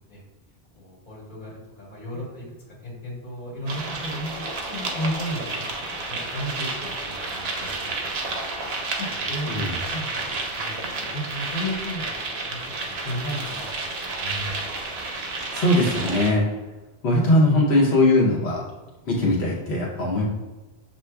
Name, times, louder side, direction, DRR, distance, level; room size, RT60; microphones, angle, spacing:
voice 1, 0.8-2.4 2.8-8.0 8.3-14.7, equal, 45° left, -6 dB, 1.5 m, -34 dB
sound 1, 3.7-16.3, right 3 dB, 70° right, 1.0 m, -31 dB
voice 2, 15.5-16.4 17.0-18.6 19.1-20.2, left 1 dB, 80° left, -4 dB, 1.1 m, -20 dB
6.8 x 2.8 x 2.2 m, 1.2 s
omnidirectional pair, 1.1 m